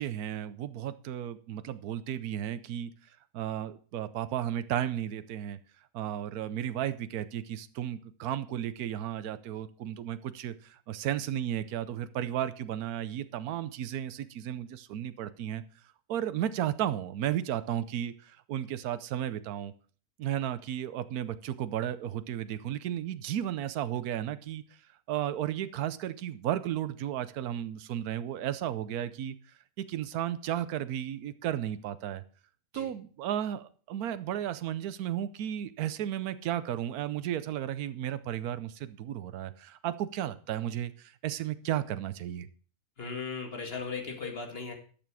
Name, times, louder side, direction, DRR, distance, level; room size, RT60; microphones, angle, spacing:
voice 1, 0.0-2.9 3.3-5.6 5.9-15.6 16.1-19.7 20.2-24.6 25.1-29.3 29.8-32.2 32.7-42.5, right 11 dB, 80° right, 13 dB, 1.2 m, -34 dB
voice 2, 43.0-44.7, left 5 dB, 40° left, 3 dB, 2.2 m, -37 dB
11.5 x 7.1 x 6.2 m, 0.43 s
omnidirectional pair, 1.6 m